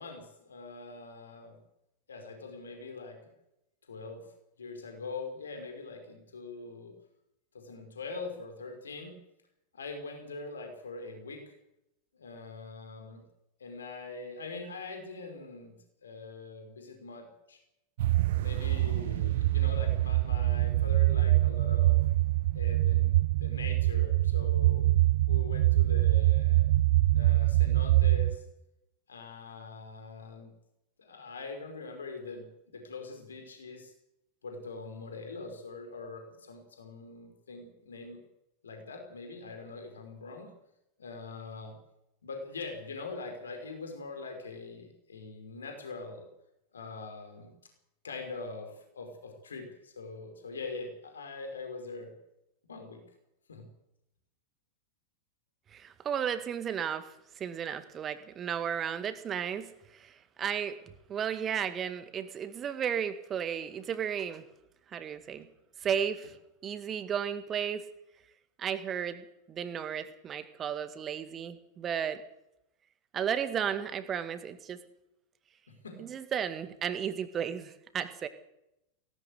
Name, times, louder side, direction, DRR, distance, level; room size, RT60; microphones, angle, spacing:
voice 1, 0.0-1.6 2.1-3.3 3.9-4.2 4.6-6.9 7.5-9.2 9.7-11.5 12.1-13.2 13.6-15.8 16.0-17.6 18.4-22.0 22.5-24.9 25.3-26.6 27.1-28.4 29.1-30.5 31.0-33.9 34.4-38.2 38.6-40.5 41.0-41.8 42.2-46.3 46.7-47.5 48.0-52.1 52.7-53.0 53.5-53.7 75.7-76.0, left 3 dB, 70° left, 4 dB, 5.1 m, -43 dB
sound 1, 18.0-28.4, right 16 dB, 55° right, 0.6 m, -25 dB
voice 2, 55.7-57.1 57.4-60.8 61.1-64.4 64.9-65.5 65.8-66.3 66.6-67.9 68.6-72.2 73.1-74.8 76.0-78.3, right 8 dB, 25° right, 11 dB, 1.9 m, -34 dB
18.0 x 17.5 x 8.2 m, 0.85 s
figure-of-eight pair, 90°, 0 cm